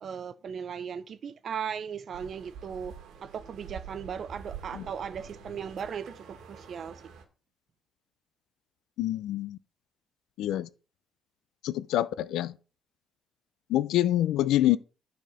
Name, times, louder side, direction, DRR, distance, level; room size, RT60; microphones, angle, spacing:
voice 1, 0.0-2.9 3.2-7.0, right 7 dB, 55° right, 0.6 m, -37 dB
sound 1, 2.1-7.2, right 7 dB, 85° right, 1.4 m, -46 dB
voice 2, 9.0-9.6 10.4-10.7 11.6-12.5 13.7-14.8, left 13 dB, 85° left, 0.5 m, -26 dB
9.1 x 4.3 x 5.6 m
cardioid pair, 90°, 0 cm